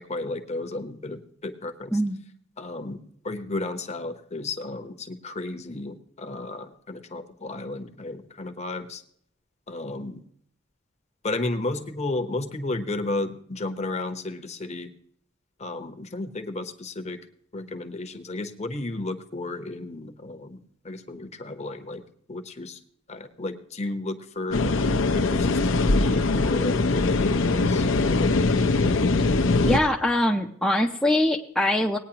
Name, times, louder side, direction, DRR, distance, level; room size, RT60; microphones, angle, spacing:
voice 1, 0.0-2.0 2.6-3.0 3.2-9.0 9.7-10.2 11.2-14.9 15.6-17.2 17.5-20.6 20.8-22.0 22.3-22.8 23.1-24.8 25.1-28.4, left 2 dB, 35° left, 8 dB, 0.9 m, -33 dB
voice 2, 1.9-2.2 29.6-32.0, left 1 dB, ahead, -1 dB, 0.6 m, -23 dB
sound 1, 24.5-29.8, left 3 dB, 65° left, 0.7 m, -22 dB
19.0 x 9.3 x 2.9 m, 0.65 s
head